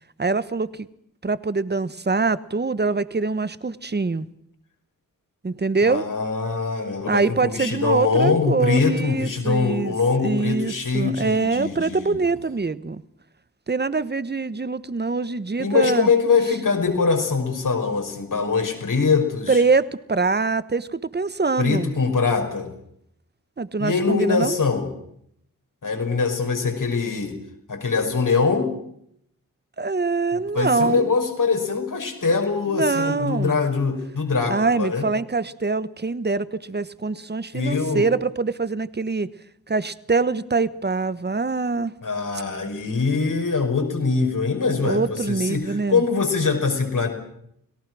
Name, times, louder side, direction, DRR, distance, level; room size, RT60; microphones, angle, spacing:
voice 1, 0.2-0.9 1.2-4.2 5.4-6.0 7.1-9.9 10.2-13.0 13.7-16.1 19.5-21.9 23.6-24.5 29.8-31.1 32.7-33.6 34.5-39.3 39.7-41.9 44.8-46.0, right 4 dB, 30° right, 16 dB, 1.1 m, -24 dB
voice 2, 5.8-12.2 15.6-19.6 21.6-22.7 23.8-24.9 25.8-27.4 27.7-28.7 30.3-35.1 37.1-37.2 37.5-38.1 42.0-47.1, left 4 dB, 65° left, 4 dB, 5.6 m, -23 dB
29.5 x 18.5 x 6.2 m, 0.73 s
wide cardioid pair, 85°, 34 cm